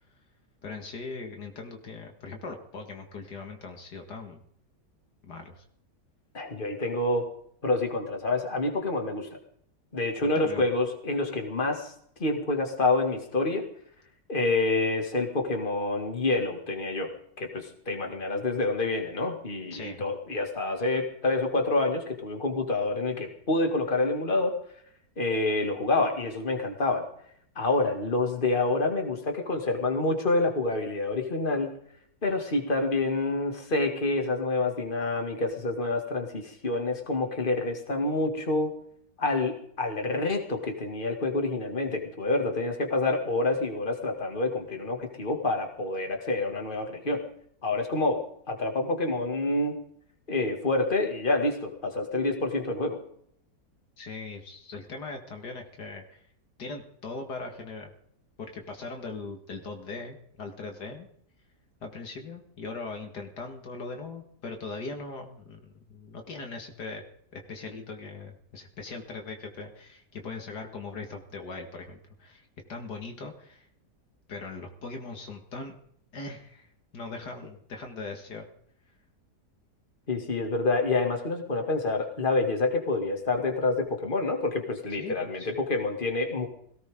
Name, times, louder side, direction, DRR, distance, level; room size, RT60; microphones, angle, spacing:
voice 1, 0.6-4.4 5.2-5.6 10.2-10.7 19.7-20.1 54.0-56.3 56.6-57.9 58.4-61.1 61.8-67.0 67.3-73.7 74.3-75.7 76.1-78.4 84.9-85.5, left 3 dB, 75° left, 4 dB, 2.5 m, -40 dB
voice 2, 6.3-7.3 7.6-9.3 9.9-11.9 12.2-13.7 14.3-17.1 17.4-24.5 25.2-27.1 27.6-31.7 32.2-38.8 39.2-47.2 47.6-49.8 50.3-53.0 80.1-86.5, left 2 dB, 30° left, 3 dB, 2.5 m, -27 dB
18.0 x 17.0 x 3.8 m, 0.65 s
omnidirectional pair, 1.8 m